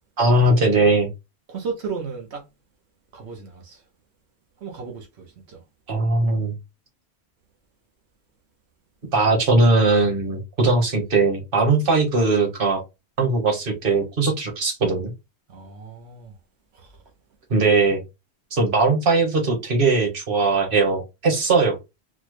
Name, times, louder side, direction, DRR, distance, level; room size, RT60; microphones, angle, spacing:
voice 1, 0.2-1.1 5.9-6.5 9.1-12.8 13.2-15.1 17.5-18.0 18.5-21.8, right 3 dB, 60° right, 1.3 m, -19 dB
voice 2, 1.5-2.5 3.1-3.8 4.6-5.6 15.5-16.3 16.7-16.9, right 5 dB, 85° right, 1.0 m, -34 dB
4.2 x 2.0 x 3.0 m
omnidirectional pair, 1.1 m